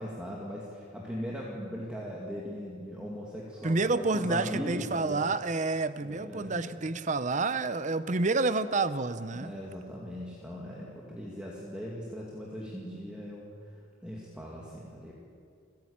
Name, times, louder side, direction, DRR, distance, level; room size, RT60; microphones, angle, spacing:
voice 1, 0.0-5.3 6.0-6.9 9.3-13.5 14.0-15.1, equal, 5° right, -4 dB, 2.2 m, -39 dB
voice 2, 3.6-9.5, right 3 dB, 35° right, 13 dB, 0.6 m, -29 dB
28.5 x 10.5 x 8.7 m, 2.3 s
head